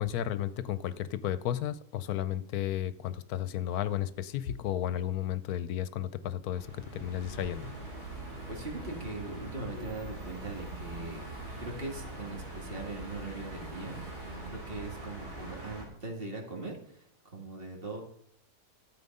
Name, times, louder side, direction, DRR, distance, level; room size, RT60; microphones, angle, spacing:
voice 1, 0.0-7.7, left 11 dB, 80° left, 14 dB, 1.1 m, -33 dB
sound 1, 6.5-15.9, right 2 dB, 85° right, 4.0 m, -42 dB
voice 2, 8.5-11.2 11.6-14.0 14.5-17.1 17.3-18.0, right 3 dB, 35° right, 0 dB, 2.4 m, -40 dB
13.0 x 7.6 x 5.4 m, 0.72 s
omnidirectional pair, 1.6 m